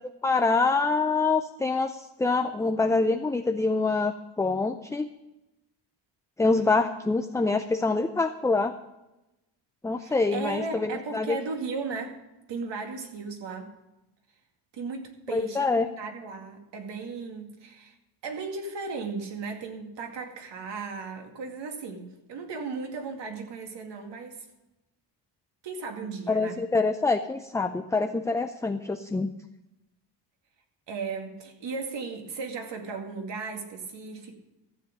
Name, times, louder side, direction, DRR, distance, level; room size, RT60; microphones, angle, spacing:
voice 1, 0.2-5.1 6.4-8.7 9.8-11.4 15.3-15.9 26.3-29.3, left 3 dB, 5° left, 7 dB, 0.4 m, -25 dB
voice 2, 10.0-12.2 12.5-13.7 14.7-18.0 18.2-24.5 25.6-26.6 30.9-34.3, right 4 dB, 65° right, 4 dB, 2.3 m, -36 dB
14.5 x 7.4 x 6.4 m, 0.97 s
cardioid pair, 105°, 46 cm